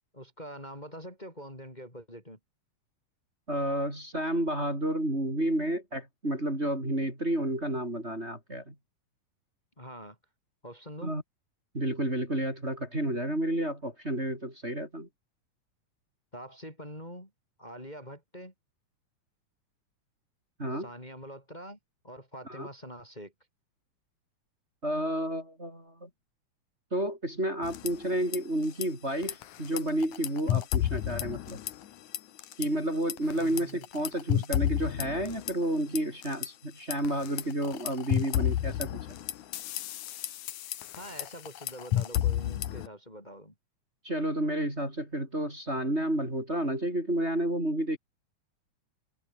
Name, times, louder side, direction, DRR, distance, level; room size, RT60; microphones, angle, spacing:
voice 1, 0.1-2.4 9.8-10.2 10.6-11.1 16.3-17.3 17.6-18.5 20.7-21.8 22.0-23.3 33.3-33.9 40.9-43.5, equal, 10° left, 6.9 m, -44 dB
voice 2, 3.5-8.7 11.0-11.2 11.7-15.1 20.6-20.9 22.5-22.7 24.8-26.1 26.9-31.6 32.6-39.0 44.0-48.0, right 1 dB, 20° right, 6.9 m, -31 dB
sound 1, 27.6-28.4 28.6-28.9 29.2-32.7 33.1-36.5 36.9-42.9, left 12 dB, 70° left, 2.5 m, -31 dB
omnidirectional pair, 3.8 m